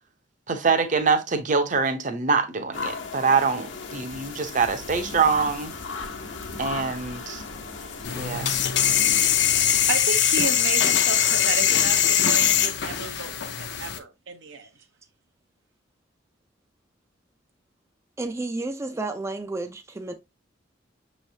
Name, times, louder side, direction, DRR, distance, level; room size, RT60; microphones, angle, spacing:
voice 1, 0.5-5.7 6.6-7.4 8.1-8.6, right 5 dB, 45° right, 0.7 m, -24 dB
sound 1, 2.7-10.0, left 4 dB, 85° left, 1.0 m, -36 dB
sound 2, 8.0-14.0, left 9 dB, 65° left, 0.6 m, -21 dB
voice 2, 9.9-14.7, right 4 dB, 85° right, 0.8 m, -33 dB
voice 3, 18.2-20.1, right 2 dB, 15° right, 0.3 m, -31 dB
6.2 x 3.2 x 2.7 m
head